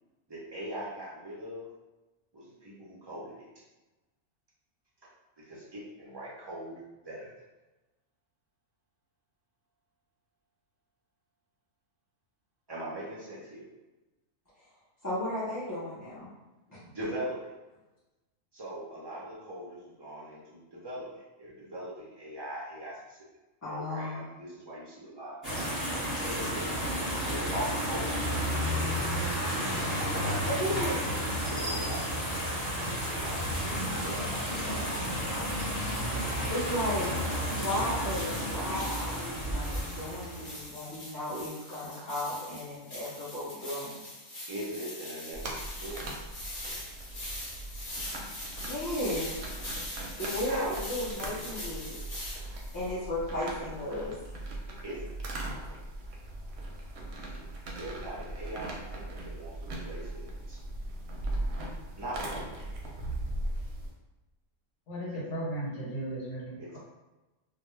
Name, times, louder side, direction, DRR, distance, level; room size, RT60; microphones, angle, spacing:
voice 1, 0.3-1.7 2.3-3.5 5.0-5.1 5.4-6.8 7.0-7.3 12.7-13.6 16.8-17.5 18.5-23.2 23.7-26.7 27.0-29.1 30.1-32.5 32.8-35.2 44.5-46.1 50.5-50.8 54.8-55.1 57.8-60.6 62.0-62.4 66.6-66.8, right 1 dB, 35° right, -6 dB, 0.4 m, -41 dB
voice 2, 15.0-16.3 16.7-16.8 23.6-24.2 30.0-30.3 30.6-31.0 35.8-37.1 37.5-44.0 48.6-49.4 50.2-52.0 52.7-54.1, left 1 dB, 30° left, -12 dB, 0.4 m, -35 dB
sound 1, 25.4-40.7, equal, 15° right, 1.0 m, -32 dB
sound 2, 38.0-52.9, left 1 dB, 45° left, 0.9 m, -42 dB
sound 3, 45.3-63.9, right 1 dB, 65° right, 0.8 m, -39 dB
voice 3, 64.9-66.8, right 1 dB, 65° left, -5 dB, 1.1 m, -36 dB
2.2 x 2.1 x 3.0 m, 1.1 s
omnidirectional pair, 1.3 m